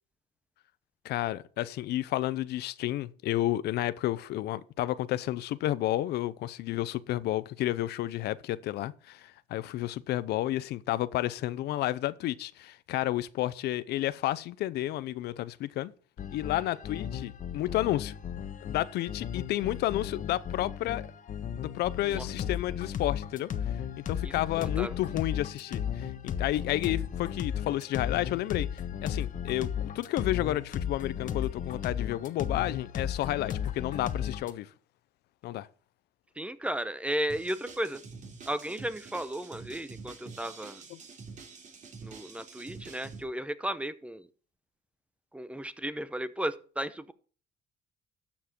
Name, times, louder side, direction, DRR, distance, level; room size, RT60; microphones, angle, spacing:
voice 1, 1.0-15.9 16.3-18.1 18.6-21.1 21.6-23.5 24.1-34.7 35.4-35.7 40.9-41.0, left 14 dB, 75° left, 0.7 m, -31 dB
sound 1, 16.2-34.5, left 8 dB, 50° left, 1.3 m, -35 dB
voice 2, 24.2-24.9 36.4-38.0 38.5-40.8 42.0-44.3 45.3-47.1, right 1 dB, 5° right, 0.8 m, -34 dB
sound 2, 37.3-43.2, right 4 dB, 45° right, 3.3 m, -47 dB
13.0 x 7.4 x 4.5 m
cardioid pair, 110°, 17 cm